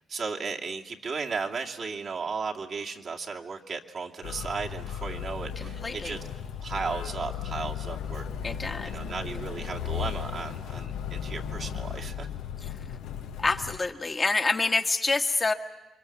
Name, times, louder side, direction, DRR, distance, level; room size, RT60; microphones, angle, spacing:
voice 1, 0.1-6.2 6.6-12.3, right 5 dB, 50° right, 0 dB, 2.3 m, -35 dB
Motor vehicle (road), 4.2-13.8, left 8 dB, 90° left, 1.4 m, -36 dB
voice 2, 5.6-6.1 8.4-8.9 13.4-15.5, left 3 dB, 25° left, 3 dB, 1.5 m, -27 dB
29.0 x 23.5 x 7.2 m, 1.0 s
cardioid pair, 90°, 0 cm